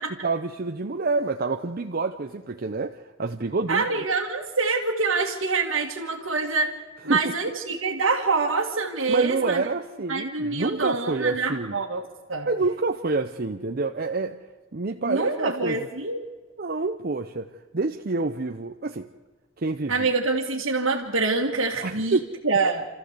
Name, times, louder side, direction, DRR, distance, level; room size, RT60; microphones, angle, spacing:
voice 1, 0.2-3.9 7.1-7.3 9.1-11.8 12.5-14.4 14.7-15.8 16.6-19.1 19.6-20.1 21.8-22.3, right 3 dB, 50° right, 5 dB, 0.7 m, -27 dB
voice 2, 3.7-6.7 7.0-9.6 10.1-12.0 12.3-12.5 15.1-16.2 19.9-22.2 22.4-22.9, right 3 dB, 75° right, -4 dB, 1.9 m, -25 dB
28.0 x 14.0 x 8.1 m, 1.3 s
head